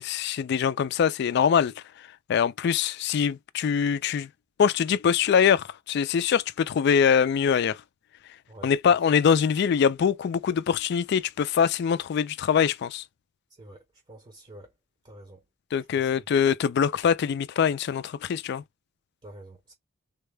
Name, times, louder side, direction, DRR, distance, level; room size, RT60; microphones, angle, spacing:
voice 1, 0.0-4.3 4.6-7.8 8.6-13.0 15.7-18.6, left 7 dB, 55° left, 0.3 m, -23 dB
voice 2, 14.1-14.7 15.0-15.4 15.9-16.1 19.2-19.7, right 1 dB, 25° right, 0.7 m, -47 dB
3.6 x 2.2 x 3.2 m
head